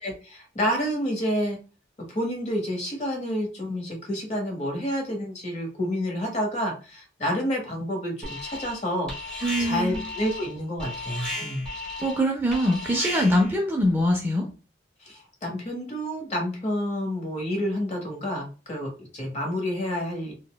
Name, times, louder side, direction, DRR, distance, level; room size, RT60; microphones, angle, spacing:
voice 1, 0.0-1.6 2.0-9.1 9.6-11.7 15.0-20.3, equal, 35° left, 1 dB, 0.9 m, -29 dB
Alarm, 8.2-8.8 9.1-13.5, left 1 dB, 5° left, 1.0 m, -35 dB
voice 2, 9.4-10.0 12.0-14.5, equal, 10° right, 1 dB, 0.4 m, -23 dB
4.0 x 2.1 x 2.2 m, 0.34 s
head